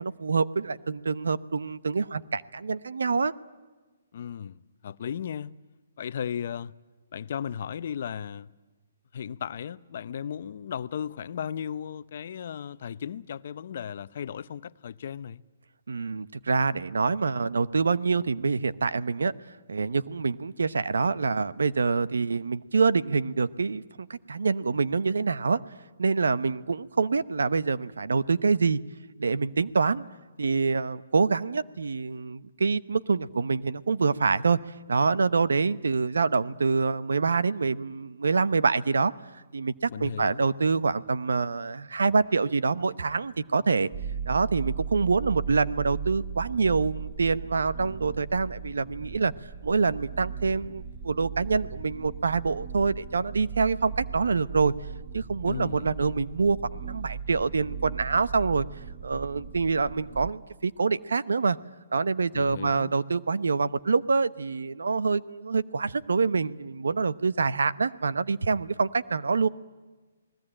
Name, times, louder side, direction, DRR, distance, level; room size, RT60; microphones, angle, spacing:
voice 1, 0.0-3.3 15.9-19.3 19.7-25.6 26.0-28.8 29.2-30.0 30.4-34.6 34.9-39.1 39.5-39.7 40.0-43.9 44.3-49.3 49.6-54.7 55.1-58.6 59.0-61.6 61.9-69.5, right 4 dB, 85° right, 0.9 m, -26 dB
voice 2, 4.1-5.5 6.0-6.7 7.1-8.5 9.1-15.4 39.9-40.5 55.5-55.9 62.3-62.9, left 8 dB, 55° left, 0.7 m, -35 dB
sound 1, 43.9-60.3, right 6 dB, 20° right, 1.3 m, -38 dB
28.5 x 20.0 x 8.9 m
hypercardioid pair, 155°, 0 cm